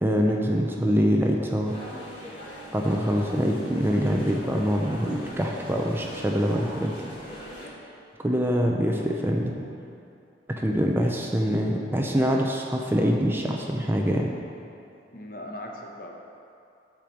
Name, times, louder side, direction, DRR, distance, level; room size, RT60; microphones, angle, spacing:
voice 1, 0.0-1.7 2.7-6.9 8.2-9.5 10.6-14.3, equal, 10° right, 0 dB, 0.6 m, -24 dB
sound 1, 1.6-7.7, equal, 30° left, 2.0 m, -41 dB
voice 2, 10.6-11.1 15.1-16.1, left 1 dB, 50° left, 1 dB, 1.0 m, -40 dB
9.0 x 5.2 x 6.2 m, 2.7 s
head